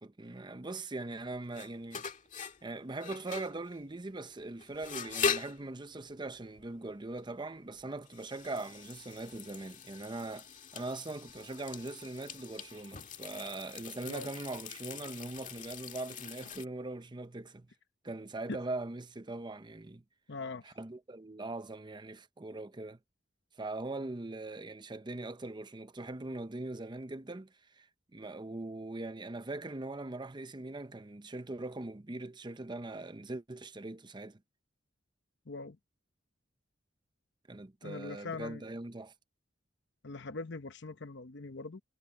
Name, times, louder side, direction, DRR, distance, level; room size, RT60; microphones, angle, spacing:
voice 1, 0.0-2.1 2.6-10.5 10.7-17.7 18.0-20.0 20.6-23.0 23.6-27.9 28.1-34.4 37.5-39.1, right 2 dB, 25° right, 0.7 m, -41 dB
sound 1, 1.2-16.7, left 6 dB, 45° left, 1.9 m, -41 dB
voice 2, 20.3-20.7 35.5-35.8 37.8-38.7 40.0-41.8, left 3 dB, 65° left, 0.9 m, -42 dB
head